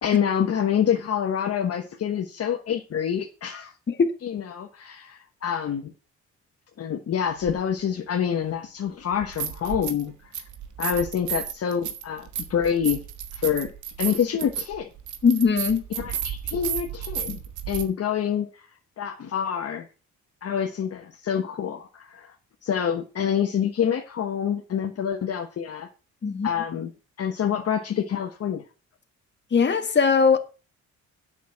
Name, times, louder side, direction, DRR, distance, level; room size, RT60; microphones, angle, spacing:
voice 1, 0.0-3.7 4.2-5.9 6.8-10.1 10.8-13.0 13.3-13.7 14.0-14.9 16.0-17.4 17.7-18.6 19.0-19.9 20.4-22.3 22.6-25.9 26.4-26.9 27.2-28.6, left 8 dB, 55° left, 1.3 m, -27 dB
sound 1, 7.4-7.6 9.1-10.1 10.3-17.8, right 9 dB, 75° right, 1.6 m, -33 dB
voice 2, 15.2-15.8 26.2-26.5 29.5-30.4, left 5 dB, 35° left, 1.7 m, -20 dB
8.2 x 6.1 x 7.6 m
cardioid pair, 90°, 30 cm